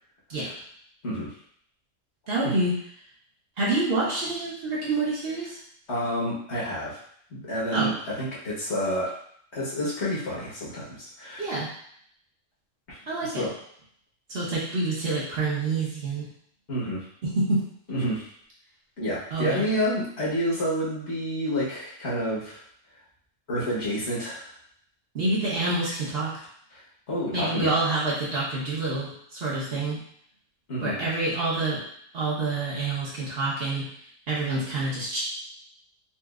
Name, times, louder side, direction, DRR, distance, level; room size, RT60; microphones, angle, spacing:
voice 1, 2.3-2.8 3.6-5.6 7.7-7.9 11.4-11.7 13.1-13.5 14.3-16.3 17.2-17.7 19.3-19.7 25.1-26.4 27.3-30.0 30.8-31.8 32.1-33.8 34.3-35.2, right 2 dB, 55° right, -6 dB, 1.2 m, -27 dB
voice 2, 5.9-7.0 7.3-9.1 9.5-11.6 12.9-13.0 13.4-13.5 16.7-17.0 17.9-18.3 19.0-22.6 23.5-24.5 26.7-26.8 27.1-27.8 30.7-31.0, equal, 60° left, -7 dB, 1.4 m, -29 dB
4.1 x 2.5 x 2.4 m, 0.65 s
omnidirectional pair, 1.3 m